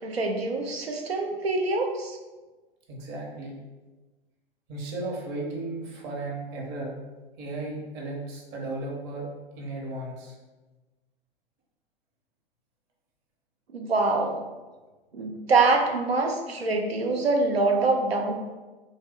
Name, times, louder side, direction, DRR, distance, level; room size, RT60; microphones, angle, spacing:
voice 1, 0.0-2.2 13.7-14.4 15.1-18.4, right 3 dB, 85° right, 2 dB, 0.6 m, -25 dB
voice 2, 2.9-3.5 4.7-7.0 7.4-9.3 9.5-10.4, right 2 dB, 35° right, -2 dB, 0.9 m, -35 dB
3.1 x 2.2 x 3.5 m, 1.2 s
figure-of-eight pair, 100°, 30 cm